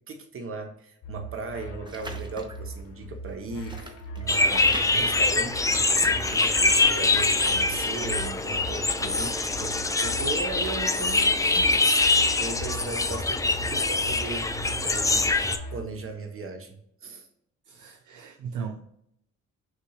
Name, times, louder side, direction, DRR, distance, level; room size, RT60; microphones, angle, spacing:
voice 1, 0.1-14.5 14.8-15.3 15.7-17.3, right 3 dB, 45° right, 4 dB, 1.1 m, -37 dB
sound 1, 1.0-15.8, right 2 dB, 85° left, 1.0 m, -40 dB
sound 2, 1.8-2.7 3.3-5.7 6.0-8.0, right 2 dB, 15° right, 0.8 m, -41 dB
sound 3, 4.3-15.6, left 3 dB, 10° left, 0.4 m, -24 dB
voice 2, 17.7-18.8, right 6 dB, 70° right, 1 dB, 0.7 m, -37 dB
6.2 x 3.0 x 2.4 m, 0.72 s
cardioid pair, 90°, 30 cm